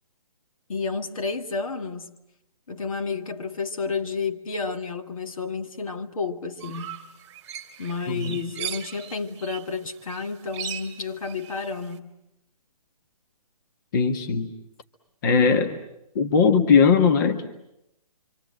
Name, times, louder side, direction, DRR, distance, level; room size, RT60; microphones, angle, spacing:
voice 1, 0.7-2.1 2.7-7.0 7.8-12.1, left 4 dB, 65° left, 2.1 m, -31 dB
sound 1, 6.6-9.7 10.0-11.9, right 9 dB, 20° right, 2.4 m, -38 dB
voice 2, 8.1-8.4 13.9-14.5 15.2-15.7 16.1-17.5, left 5 dB, 35° left, 1.5 m, -19 dB
27.0 x 26.0 x 7.8 m
hypercardioid pair, 165°, 19 cm